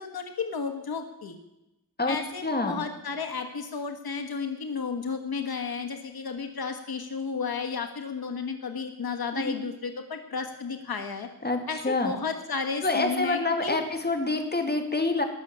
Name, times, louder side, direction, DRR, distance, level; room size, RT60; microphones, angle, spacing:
voice 1, 0.0-1.4 2.1-11.3 11.7-13.8, left 5 dB, 85° left, 5 dB, 1.5 m, -33 dB
voice 2, 2.4-2.8 9.3-9.6 11.4-12.1 12.8-15.2, left 2 dB, 25° left, 5 dB, 2.4 m, -27 dB
19.5 x 6.9 x 8.6 m, 0.93 s
wide cardioid pair, 70°, 36 cm